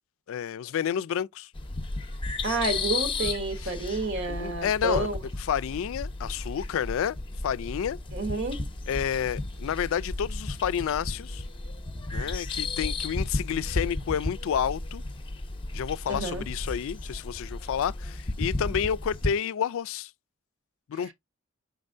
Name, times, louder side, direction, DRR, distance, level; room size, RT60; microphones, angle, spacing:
voice 1, 0.3-1.5 3.6-3.7 4.3-5.1 5.5-7.2 7.4-8.0 8.9-11.4 12.1-15.0 15.7-20.1 20.9-21.1, left 8 dB, 65° left, 0.3 m, -30 dB
sound 1, 1.6-19.3, left 2 dB, 25° left, 0.7 m, -34 dB
voice 2, 2.4-5.2 8.1-8.6 16.1-16.4 18.6-18.8, right 2 dB, 60° right, 1.1 m, -30 dB
5.4 x 3.9 x 2.5 m
head